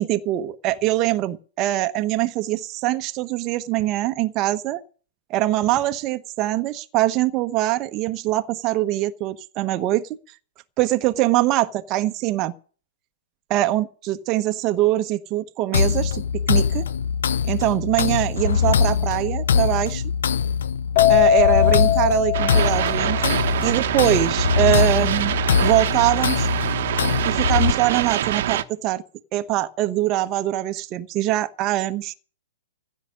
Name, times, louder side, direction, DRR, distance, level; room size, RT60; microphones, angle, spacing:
voice 1, 0.0-4.8 5.3-10.0 10.8-12.5 13.5-16.9 17.5-20.0 21.1-25.3 25.6-26.5 27.2-29.0 29.3-32.1, right 15 dB, 30° right, 1.1 m, -23 dB
sound 1, 15.7-27.7, left 6 dB, 65° left, 0.6 m, -22 dB
Keyboard (musical), 21.0-23.4, left 14 dB, 45° left, 1.0 m, -20 dB
sound 2, 22.3-28.6, right 11 dB, 55° right, 1.1 m, -25 dB
15.5 x 6.4 x 9.9 m
figure-of-eight pair, 115°, 0 cm